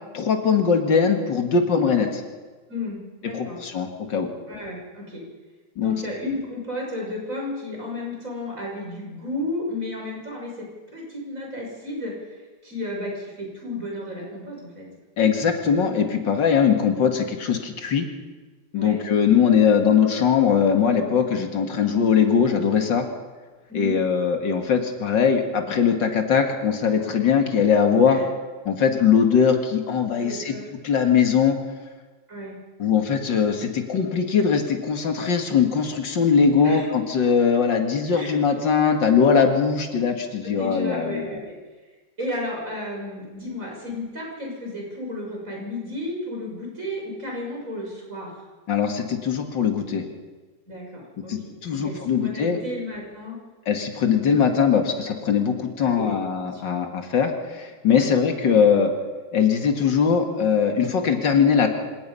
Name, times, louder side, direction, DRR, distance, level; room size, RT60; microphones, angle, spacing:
voice 1, 0.1-2.2 3.3-4.3 5.8-5.9 15.2-18.1 18.7-23.0 23.7-28.2 28.7-30.5 30.8-31.6 32.8-41.4 48.7-50.1 51.3-52.6 53.7-58.9 59.3-61.7, left 6 dB, 85° left, 4 dB, 2.6 m, -21 dB
voice 2, 2.7-3.6 4.5-5.2 5.8-14.9 18.7-19.0 23.7-24.0 28.1-28.2 30.1-30.7 32.3-32.6 36.6-36.9 38.1-38.4 40.4-41.5 42.2-48.4 50.7-51.4 51.7-53.4 55.8-56.8 58.0-58.1, left 1 dB, 45° right, -1 dB, 6.7 m, -33 dB
26.5 x 18.0 x 5.6 m, 1.3 s
omnidirectional pair, 1.9 m